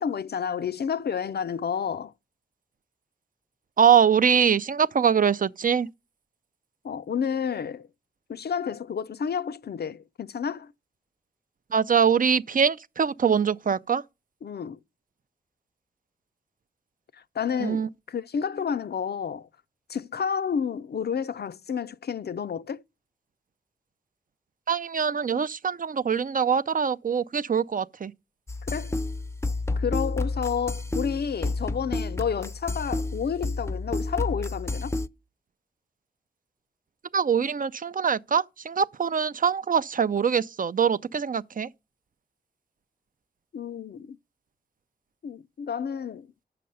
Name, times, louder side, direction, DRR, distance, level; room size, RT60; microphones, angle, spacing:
voice 1, 0.0-2.1 6.8-7.9 8.3-10.7 14.4-14.8 17.3-19.5 19.9-22.8 28.7-29.0 29.8-35.0 43.5-44.2 45.2-46.3, left 7 dB, 70° left, 0.5 m, -30 dB
voice 2, 3.8-5.9 11.7-14.0 17.6-17.9 24.7-28.1 37.1-41.7, right 7 dB, 55° right, 0.4 m, -23 dB
sound 1, 28.5-35.1, left 2 dB, 15° left, 0.5 m, -30 dB
8.4 x 6.8 x 5.4 m
wide cardioid pair, 65°, 17 cm